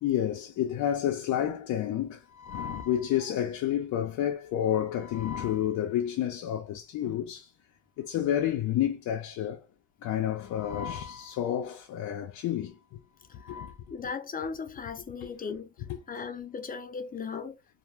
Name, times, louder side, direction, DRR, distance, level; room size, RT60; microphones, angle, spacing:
voice 1, 0.0-7.5 8.0-9.6 10.0-12.7 13.3-13.8, left 10 dB, 75° left, 0.5 m, -30 dB
voice 2, 13.9-15.7 16.1-17.6, left 5 dB, 30° left, 0.5 m, -37 dB
2.4 x 2.1 x 3.1 m
cardioid pair, 90°, 30 cm